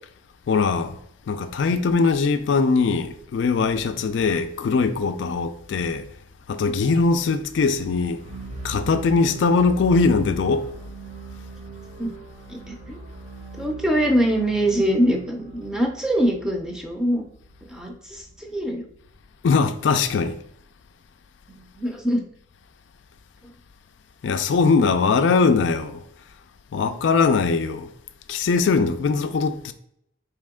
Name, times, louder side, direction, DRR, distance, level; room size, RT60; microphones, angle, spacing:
voice 1, 0.5-1.0 1.3-6.1 6.5-8.2 8.6-10.7 19.4-20.4 24.2-26.0 26.7-27.9 28.3-29.7, left 4 dB, 75° left, 0.3 m, -21 dB
sound 1, 8.1-18.1, right 3 dB, 40° right, 0.8 m, -39 dB
voice 2, 12.5-13.1 13.6-17.2 17.7-18.8 21.5-22.2, equal, 5° right, 0.5 m, -23 dB
4.1 x 2.9 x 3.6 m
head